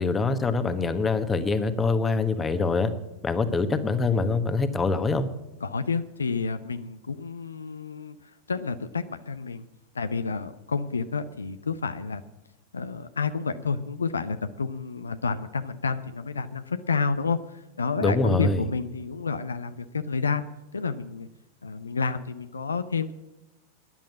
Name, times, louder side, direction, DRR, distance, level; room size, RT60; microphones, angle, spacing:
voice 1, 0.0-2.9 3.2-5.3 18.0-18.6, left 3 dB, 15° left, 11 dB, 1.2 m, -24 dB
voice 2, 5.6-8.2 8.5-9.6 9.9-12.2 12.7-20.5 20.7-21.3 21.6-23.1, left 5 dB, 75° left, 12 dB, 0.6 m, -30 dB
13.0 x 10.5 x 7.4 m, 0.98 s
figure-of-eight pair, 90°, 0 cm